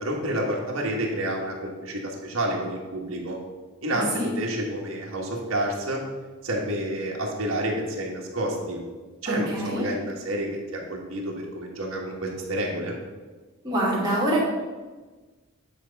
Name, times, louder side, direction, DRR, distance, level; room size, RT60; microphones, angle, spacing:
voice 1, 0.0-3.4 3.8-6.0 6.4-8.8 9.2-13.0, right 1 dB, 60° right, -1 dB, 1.8 m, -29 dB
voice 2, 3.9-4.3 9.3-9.8 13.6-14.4, right 1 dB, 20° right, -7 dB, 2.7 m, -25 dB
9.5 x 4.7 x 5.4 m, 1.3 s
head